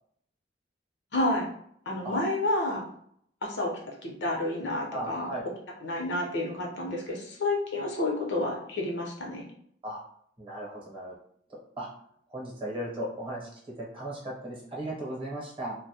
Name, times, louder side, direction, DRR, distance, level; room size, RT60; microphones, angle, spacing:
voice 1, 1.1-1.5 1.9-2.8 3.4-3.7 4.0-5.3 5.8-9.4, left 1 dB, 75° left, -1 dB, 0.7 m, -30 dB
voice 2, 4.9-5.4 9.8-10.0 10.4-11.1 11.8-11.9 12.3-13.5 13.9-15.8, right 1 dB, 30° right, -4 dB, 0.8 m, -36 dB
2.2 x 2.0 x 2.7 m, 0.67 s
head